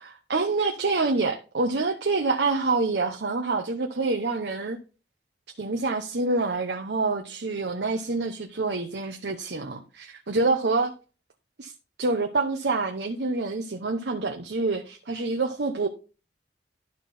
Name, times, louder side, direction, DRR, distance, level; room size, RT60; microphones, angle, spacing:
voice 1, 0.0-4.8 5.6-10.9 11.6-11.7 12.0-15.9, right 3 dB, 75° right, 0.9 m, -27 dB
12.0 x 4.2 x 4.1 m
head